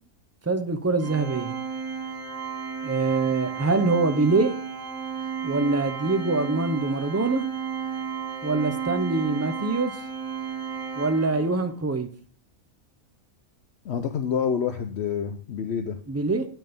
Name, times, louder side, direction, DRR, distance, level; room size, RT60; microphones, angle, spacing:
voice 1, 0.5-1.5 2.8-4.5 5.4-7.4 8.4-9.9 11.0-12.1 16.1-16.4, right 3 dB, 15° right, 8 dB, 0.6 m, -24 dB
Organ, 1.0-11.7, right 6 dB, 65° right, 1.7 m, -33 dB
voice 2, 13.8-16.0, left 7 dB, 60° left, 8 dB, 0.9 m, -27 dB
9.1 x 6.1 x 5.2 m, 0.43 s
omnidirectional pair, 1.4 m